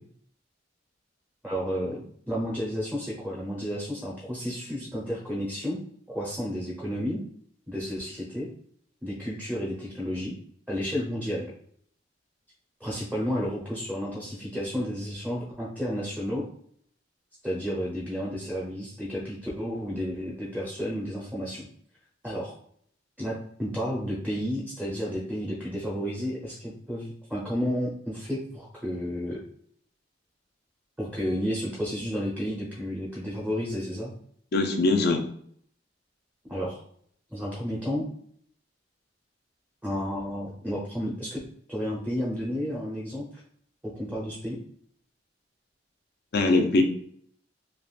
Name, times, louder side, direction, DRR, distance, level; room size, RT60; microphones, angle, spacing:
voice 1, 1.4-5.8 6.1-7.2 7.7-8.5 9.0-10.4 10.7-11.5 12.8-16.5 17.4-21.7 22.2-22.5 23.2-29.4 31.0-34.1 36.5-36.8 37.3-38.1 39.8-41.4 41.7-43.2 43.8-44.6, equal, 5° right, -6 dB, 0.7 m, -31 dB
voice 2, 34.5-35.2 46.3-46.8, left 2 dB, 60° left, 5 dB, 0.5 m, -21 dB
3.4 x 2.5 x 2.4 m, 0.62 s
head